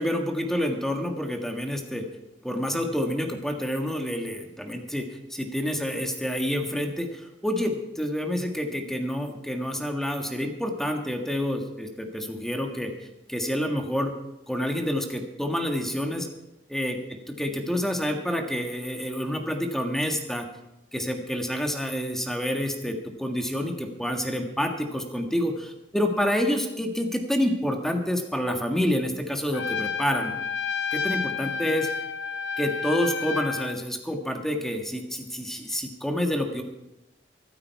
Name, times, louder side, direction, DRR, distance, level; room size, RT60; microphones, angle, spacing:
voice 1, 0.0-2.1 2.4-12.9 13.3-14.1 14.5-16.3 16.7-20.5 20.9-30.3 30.9-31.9 32.6-36.6, equal, ahead, 4 dB, 1.6 m, -28 dB
Trumpet, 29.5-33.8, left 5 dB, 70° left, 0.8 m, -30 dB
24.0 x 8.9 x 4.7 m, 0.91 s
head